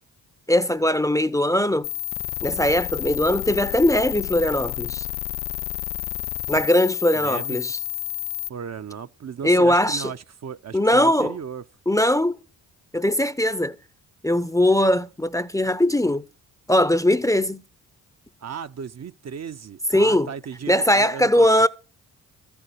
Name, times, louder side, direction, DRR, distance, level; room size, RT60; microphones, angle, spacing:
voice 1, 0.5-1.9 2.4-5.1 6.5-7.8 9.4-10.1 10.7-11.3 11.9-12.4 12.9-13.8 14.2-16.2 16.7-17.6 19.9-20.3 20.7-21.7, left 1 dB, 10° left, 0.7 m, -20 dB
sound 1, 1.8-8.5, left 14 dB, 80° left, 0.5 m, -30 dB
voice 2, 7.2-7.6 8.5-11.6 18.4-21.7, right 7 dB, 40° right, 0.7 m, -35 dB
14.0 x 7.0 x 8.2 m
supercardioid pair, 55°, 39 cm